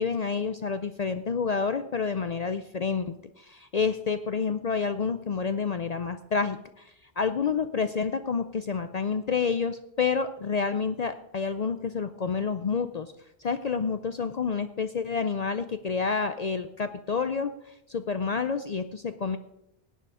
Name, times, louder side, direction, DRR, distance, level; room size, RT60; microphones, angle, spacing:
voice 1, 0.0-6.9 7.2-13.1 13.4-17.5 17.9-19.4, left 5 dB, 50° left, 10 dB, 0.6 m, -29 dB
17.5 x 9.3 x 4.9 m, 0.83 s
omnidirectional pair, 1.1 m